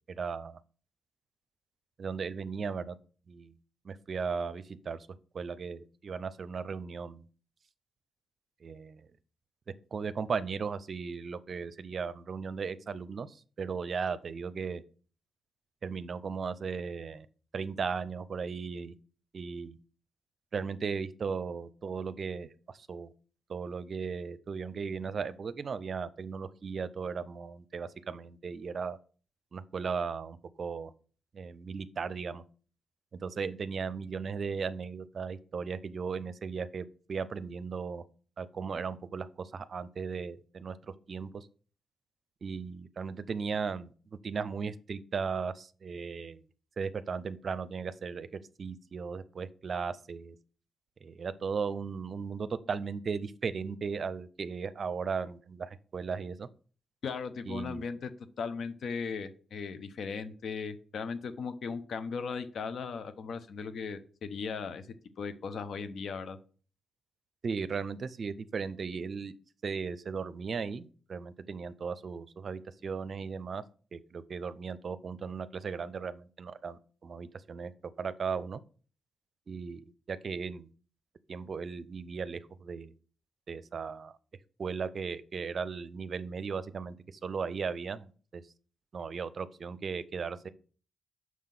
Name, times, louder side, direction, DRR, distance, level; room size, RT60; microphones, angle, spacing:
voice 1, 0.2-0.6 2.0-2.9 3.3-3.5 3.9-5.0 5.3-7.2 8.6-9.0 9.9-13.3 13.6-14.8 15.8-17.3 17.5-18.9 19.3-19.8 20.5-22.5 22.9-23.1 23.5-29.0 29.5-30.9 31.3-32.4 33.2-38.0 38.4-39.3 39.5-40.7 41.1-41.5 42.4-43.9 44.2-46.4 46.8-48.3 48.6-50.3 51.0-56.5 57.5-57.9 67.4-69.3 69.6-73.6 73.9-77.7 78.0-78.6 79.5-80.7 81.3-82.9 83.5-84.1 84.6-87.0 87.2-88.4 88.9-90.5, right 5 dB, 55° right, 15 dB, 0.5 m, -36 dB
voice 2, 57.0-58.1 58.4-64.9 65.2-66.4, left 5 dB, 65° left, 11 dB, 0.7 m, -37 dB
6.2 x 3.7 x 5.9 m, 0.40 s
hypercardioid pair, 40°, 0 cm